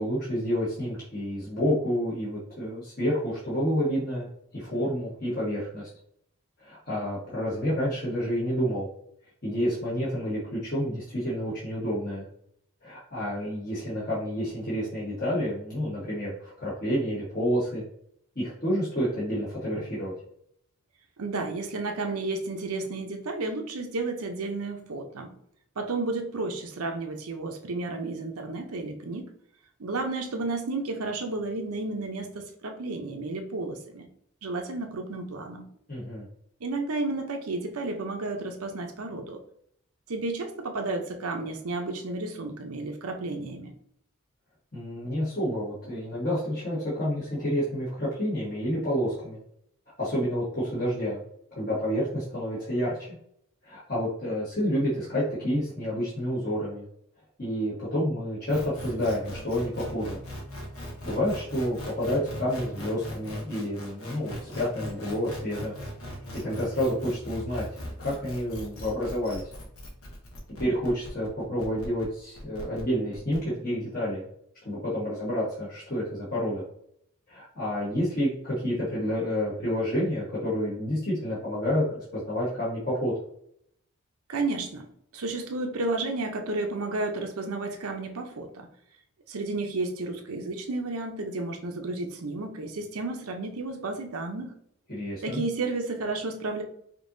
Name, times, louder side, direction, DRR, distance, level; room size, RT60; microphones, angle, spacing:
voice 1, 0.0-4.3 4.5-5.9 6.6-8.9 9.4-12.2 12.8-17.8 18.3-20.1 35.9-36.3 44.7-49.4 50.0-51.2 51.6-53.1 53.6-56.8 57.4-60.2 61.0-65.7 66.4-69.4 70.6-74.3 74.6-76.6 77.3-83.1 94.9-95.4, equal, 40° left, -8 dB, 1.3 m, -29 dB
voice 2, 21.2-25.4 25.8-29.3 29.8-34.1 34.4-35.7 36.6-39.4 40.1-43.7 84.3-84.9 85.1-88.7 89.3-94.5 95.2-96.6, right 3 dB, 85° right, 4 dB, 0.7 m, -32 dB
sound 1, 58.5-73.4, equal, 80° left, 1.2 m, -39 dB
5.3 x 2.8 x 2.6 m, 0.68 s
head